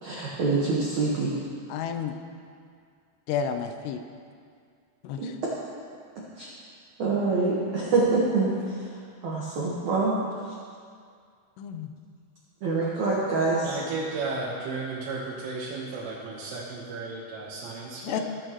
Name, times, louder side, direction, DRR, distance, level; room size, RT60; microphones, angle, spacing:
voice 1, 0.0-1.3 5.2-5.3 6.4-6.5 7.0-10.2 12.6-13.8, right 3 dB, 70° right, -5 dB, 1.8 m, -26 dB
voice 2, 1.7-2.2 3.3-4.0 5.0-5.2 11.6-11.9 18.0-18.2, left 7 dB, 80° left, 7 dB, 2.5 m, -30 dB
voice 3, 13.6-18.2, right 3 dB, 85° right, -5 dB, 3.7 m, -34 dB
21.0 x 8.7 x 3.0 m, 2.2 s
omnidirectional pair, 5.5 m